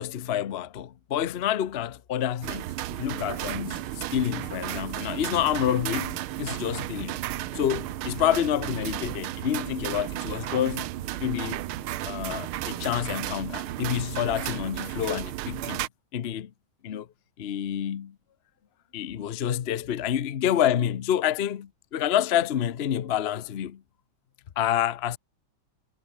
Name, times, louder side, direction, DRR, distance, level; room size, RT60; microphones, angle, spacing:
voice 1, 0.0-3.8 4.1-10.9 11.2-11.6 12.1-15.8 16.1-16.5 16.8-17.1 17.4-18.1 18.9-23.8 24.6-25.2, left 10 dB, 75° left, 0.5 m, -28 dB
sound 1, 2.4-15.9, right 15 dB, 85° right, 1.6 m, -34 dB
sound 2, 3.1-14.7, equal, 10° right, 6.5 m, -49 dB
omnidirectional pair, 2.3 m